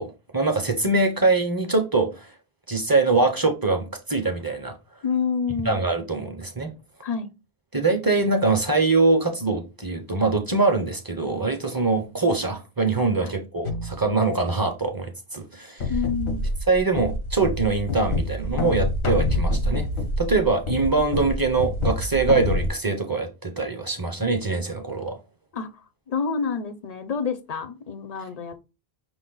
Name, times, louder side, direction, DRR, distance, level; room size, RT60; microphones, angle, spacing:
voice 1, 0.0-2.3 2.7-4.8 5.7-6.7 7.7-15.9 16.7-19.9 20.2-25.2, right 3 dB, 30° right, 0.5 m, -23 dB
voice 2, 5.0-5.8 7.0-7.3 13.2-13.3 15.9-16.4 25.5-25.7 26.1-28.6, left 6 dB, 50° left, 0.5 m, -28 dB
sound 1, 13.6-14.1 15.8-22.7, left 1 dB, 80° left, 1.0 m, -26 dB
5.9 x 2.1 x 3.8 m
omnidirectional pair, 1.1 m